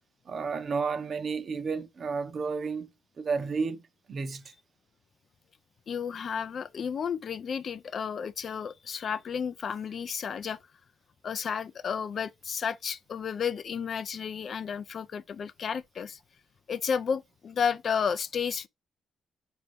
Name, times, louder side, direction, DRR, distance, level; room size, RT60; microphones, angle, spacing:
voice 1, 0.3-2.9 3.2-3.8 4.1-4.5, right 5 dB, 50° right, 0.7 m, -31 dB
voice 2, 5.9-10.6 11.2-16.2 16.7-18.7, left 7 dB, 50° left, 0.4 m, -32 dB
4.3 x 2.6 x 3.3 m
cardioid pair, 90°, 0 cm